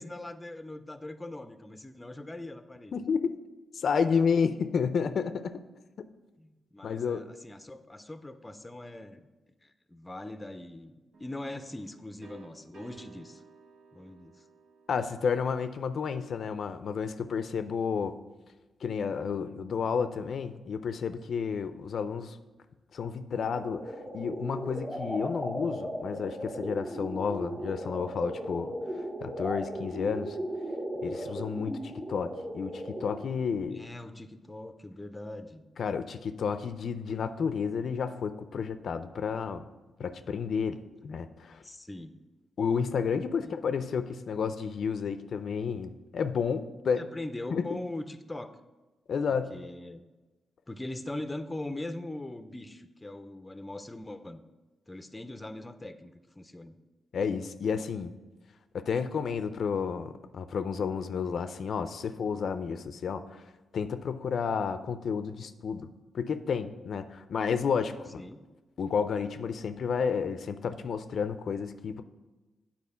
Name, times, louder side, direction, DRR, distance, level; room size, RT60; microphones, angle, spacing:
voice 1, 0.0-3.0 6.4-9.3 9.6-13.4 13.9-14.4 33.7-35.6 41.6-42.2 43.4-43.6 47.0-48.5 49.3-50.0 50.7-54.4 54.9-56.8 68.1-68.4, left 1 dB, 15° left, 10 dB, 0.5 m, -41 dB
voice 2, 2.9-3.3 3.7-5.6 6.0-6.1 6.8-7.3 14.9-18.2 18.8-22.4 22.9-28.8 29.2-30.4 31.0-33.9 35.8-39.6 40.0-41.6 42.6-47.0 47.5-47.7 49.1-49.5 57.1-58.1 58.7-63.4 63.7-65.9 66.1-68.2 68.8-72.0, left 6 dB, 65° left, 10 dB, 0.4 m, -31 dB
sound 1, 11.1-16.8, right 3 dB, 80° right, 1.0 m, -56 dB
sound 2, 23.3-33.3, equal, 10° right, 1.4 m, -37 dB
8.5 x 4.2 x 5.6 m, 1.2 s
cardioid pair, 85°, 0 cm